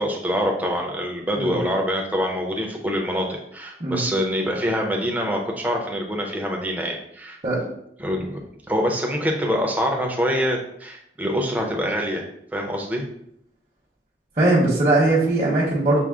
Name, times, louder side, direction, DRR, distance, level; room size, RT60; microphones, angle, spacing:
voice 1, 0.0-7.4 8.0-8.4 8.7-12.2 12.5-13.0, equal, 10° right, 0 dB, 0.6 m, -25 dB
voice 2, 14.4-16.0, right 2 dB, 35° right, -7 dB, 0.9 m, -19 dB
6.0 x 2.0 x 3.6 m, 0.74 s
head